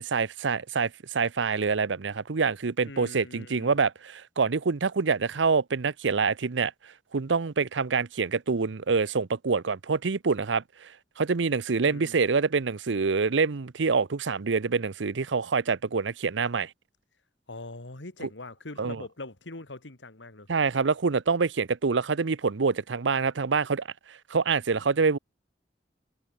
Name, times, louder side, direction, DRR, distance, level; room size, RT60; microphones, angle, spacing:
voice 1, 0.0-6.7 7.1-10.9 11.2-16.7 18.8-19.0 20.5-25.2, right 5 dB, 85° right, 0.7 m, -26 dB
voice 2, 2.8-3.8 11.8-12.2 17.5-20.5, left 2 dB, 85° left, 2.4 m, -42 dB
head